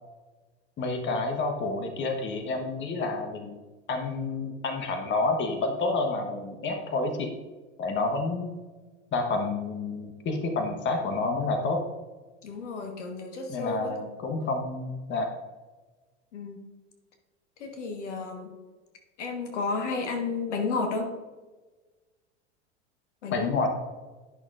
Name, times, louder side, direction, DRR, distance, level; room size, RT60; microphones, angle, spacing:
voice 1, 0.8-3.5 3.9-7.3 7.8-8.5 9.1-11.8 13.5-15.3 23.3-23.7, left 3 dB, 30° left, 4 dB, 1.2 m, -29 dB
voice 2, 12.4-14.1 16.3-16.6 17.6-18.6 19.2-21.1 23.2-23.7, left 4 dB, 75° left, 4 dB, 1.4 m, -32 dB
11.0 x 6.1 x 2.5 m, 1.3 s
hypercardioid pair, 85°, 36 cm